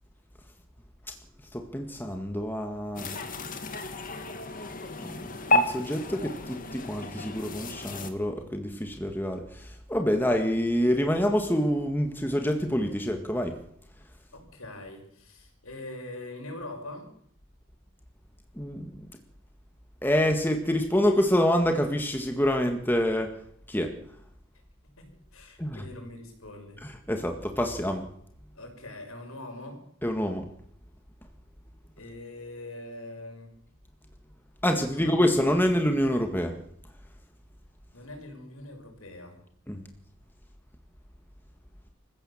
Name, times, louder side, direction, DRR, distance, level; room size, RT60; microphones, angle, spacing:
voice 1, 1.5-3.1 5.0-13.6 18.6-19.1 20.0-23.3 23.7-23.9 25.6-25.9 26.8-28.0 30.0-30.5 34.6-36.6 39.7-39.8, equal, 10° left, 5 dB, 1.9 m, -27 dB
sound 1, 2.9-8.1, left 2 dB, 40° left, 2.1 m, -31 dB
voice 2, 14.3-17.1 25.0-26.8 28.5-29.8 32.0-33.5 34.7-35.4 37.9-39.4, left 1 dB, 80° left, 4 dB, 6.1 m, -43 dB
26.5 x 15.5 x 7.3 m, 0.70 s
head